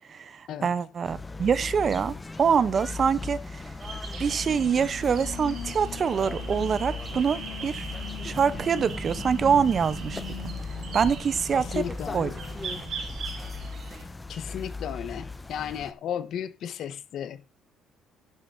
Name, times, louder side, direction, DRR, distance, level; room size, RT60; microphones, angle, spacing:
voice 1, 0.1-3.6 4.2-7.9 8.2-10.5 10.9-11.8 12.1-12.3, right 6 dB, 35° right, 0.8 m, -25 dB
sound 1, 1.0-15.9, left 3 dB, 10° left, 0.9 m, -37 dB
sound 2, 3.8-14.0, right 5 dB, 50° right, 5.0 m, -41 dB
sound 3, 4.5-13.0, left 8 dB, 90° left, 3.2 m, -44 dB
voice 2, 11.6-12.3 14.3-17.5, left 9 dB, 55° left, 1.2 m, -34 dB
11.5 x 11.0 x 2.7 m
cardioid pair, 150°, 0 cm